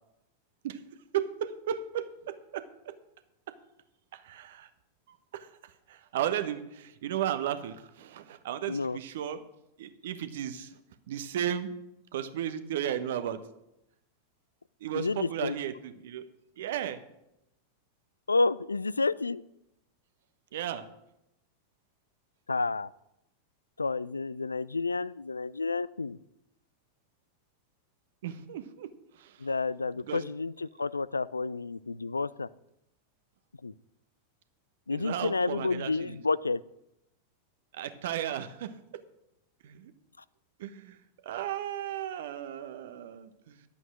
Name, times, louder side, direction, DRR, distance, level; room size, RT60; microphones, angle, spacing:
voice 1, 1.1-3.0 4.1-4.7 5.3-9.4 9.8-10.8 11.1-11.7 12.1-13.4 14.8-16.3 16.6-17.0 20.5-20.9 28.2-29.5 30.1-30.2 34.9-36.2 37.7-39.0 39.6-39.9 40.6-43.6, right 10 dB, 55° right, 10 dB, 1.0 m, -35 dB
voice 2, 8.7-9.0 14.9-15.6 18.3-19.4 22.5-22.9 23.8-26.2 29.4-32.5 33.6-33.7 34.9-36.6, left 3 dB, 80° left, 20 dB, 0.3 m, -30 dB
11.0 x 8.3 x 6.2 m, 0.86 s
figure-of-eight pair, 90°, 0 cm